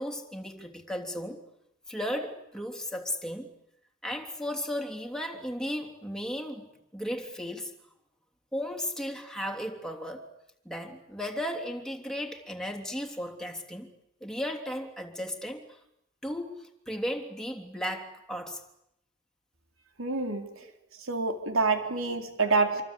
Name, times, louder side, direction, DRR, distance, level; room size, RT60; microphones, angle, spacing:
voice 1, 0.0-1.4 1.9-3.5 4.0-7.7 8.5-10.3 10.6-13.9 14.2-15.8 16.2-18.6 20.6-20.7, equal, 5° left, 3.3 m, -35 dB
voice 2, 20.0-20.5 21.0-22.8, right 3 dB, 75° right, 4.1 m, -27 dB
26.5 x 25.0 x 8.5 m
head